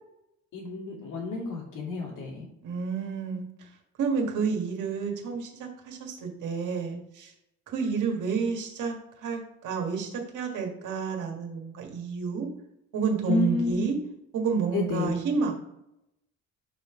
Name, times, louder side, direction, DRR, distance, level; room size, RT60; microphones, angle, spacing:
voice 1, 0.5-2.5 13.3-13.8 14.7-15.1, left 3 dB, 80° left, -1 dB, 2.4 m, -30 dB
voice 2, 2.6-3.7 4.0-7.3 7.7-12.5 12.9-14.0 14.3-15.5, right 5 dB, 80° right, 1 dB, 1.7 m, -30 dB
6.5 x 3.3 x 5.9 m, 0.84 s
cardioid pair, 90°, 30 cm